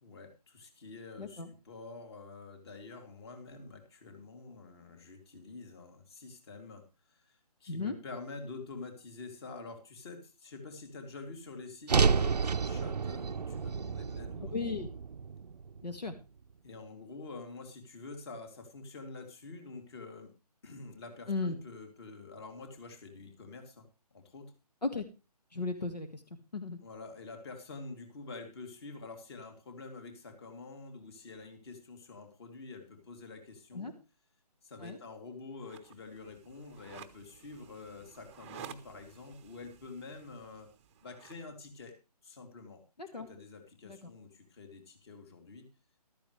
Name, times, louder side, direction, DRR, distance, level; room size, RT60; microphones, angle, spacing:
voice 1, 0.0-6.8 7.1-14.5 16.6-20.3 20.6-24.5 26.8-33.9 34.6-40.7 41.0-42.0 42.2-42.8 43.1-45.7, left 3 dB, 40° left, 5 dB, 3.0 m, -47 dB
voice 2, 1.2-1.5 7.7-7.9 14.5-14.9 15.8-16.1 21.3-21.6 24.8-25.1 25.5-26.2 26.5-26.8 33.7-33.9 34.8-35.0 43.0-43.3 43.8-44.0, left 3 dB, 85° left, 7 dB, 1.7 m, -35 dB
sound 1, 11.9-16.1, right 5 dB, 80° right, 0.6 m, -30 dB
sound 2, 35.6-41.4, right 9 dB, 20° right, 0.7 m, -53 dB
14.0 x 13.0 x 3.3 m, 0.29 s
figure-of-eight pair, 145°, 21 cm